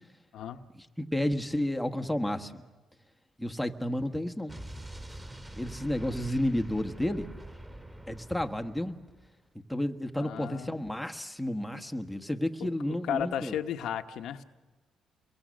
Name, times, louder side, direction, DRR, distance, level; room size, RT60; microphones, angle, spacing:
voice 1, 0.7-2.6 3.4-4.6 5.5-7.3 8.1-9.0 9.7-13.6, left 1 dB, ahead, 5 dB, 1.5 m, -31 dB
Explosion, 4.5-9.3, right 1 dB, 20° right, 4.8 m, -45 dB
voice 2, 10.2-10.8 12.6-12.7 13.1-14.4, left 9 dB, 80° left, 7 dB, 1.1 m, -34 dB
29.0 x 23.0 x 6.5 m, 1.2 s
cardioid pair, 90°, 0 cm